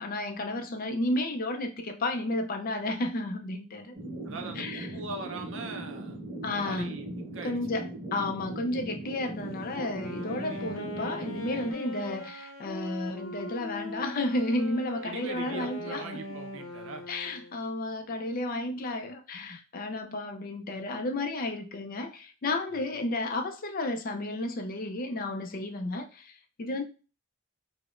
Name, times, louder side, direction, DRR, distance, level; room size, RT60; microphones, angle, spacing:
voice 1, 0.0-3.9 4.5-4.9 6.4-6.9 7.4-16.0 17.1-26.8, left 2 dB, 40° left, 0.4 m, -32 dB
sound 1, 3.9-11.7, right 1 dB, 20° right, 1.4 m, -39 dB
voice 2, 4.3-6.2 6.5-7.1 7.3-7.6 10.4-10.6 15.0-17.0, right 3 dB, 60° right, 0.6 m, -40 dB
Wind instrument woodwind instrument, 9.7-17.6, left 1 dB, 65° left, 0.7 m, -40 dB
4.7 x 2.0 x 2.4 m
head